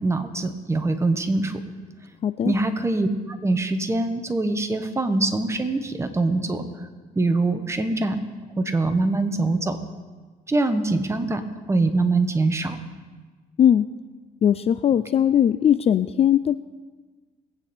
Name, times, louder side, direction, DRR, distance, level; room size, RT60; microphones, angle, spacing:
voice 1, 0.0-1.5 2.4-6.9 7.1-8.2 8.6-9.8 10.5-11.4 11.7-12.8, right 2 dB, 15° right, 7 dB, 1.2 m, -23 dB
voice 2, 2.2-2.5 13.6-13.9 14.4-16.6, left 9 dB, 35° left, 13 dB, 0.4 m, -19 dB
21.5 x 8.7 x 4.4 m, 1.3 s
cardioid pair, 110°, 17 cm